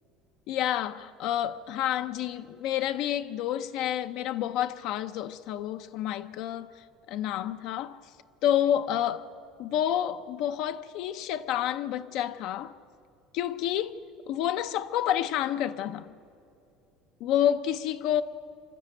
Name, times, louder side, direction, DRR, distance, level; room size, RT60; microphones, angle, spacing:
voice 1, 0.5-8.0 8.4-9.3 9.6-12.7 13.3-13.9 14.3-16.1 17.2-18.2, left 11 dB, 55° left, 0.5 m, -29 dB
25.5 x 13.0 x 8.9 m
cardioid pair, 170°, 0 cm